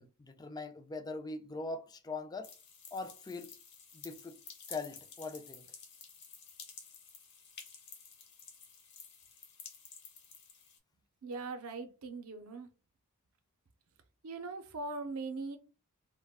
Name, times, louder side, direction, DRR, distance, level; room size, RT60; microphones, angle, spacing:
voice 1, 0.0-2.5 2.9-3.5 3.9-4.4 4.7-5.7, left 3 dB, 15° left, 0.3 m, -41 dB
sound 1, 2.4-10.8, left 6 dB, 50° left, 0.9 m, -52 dB
voice 2, 11.2-12.7 14.2-15.6, right 3 dB, 70° right, 0.6 m, -40 dB
2.3 x 2.1 x 3.5 m
head